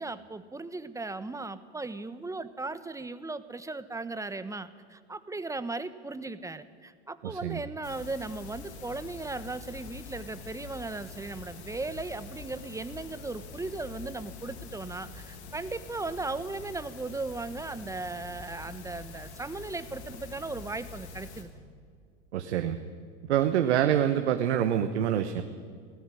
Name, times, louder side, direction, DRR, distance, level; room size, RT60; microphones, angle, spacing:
voice 1, 0.0-21.5, right 3 dB, 10° right, 13 dB, 1.1 m, -37 dB
voice 2, 7.2-7.6 22.3-22.8 23.3-25.4, right 10 dB, 80° right, 8 dB, 1.1 m, -26 dB
sound 1, 7.8-21.4, left 4 dB, 75° left, 2.9 m, -45 dB
17.5 x 15.0 x 9.9 m, 2.1 s
hypercardioid pair, 90°, 34 cm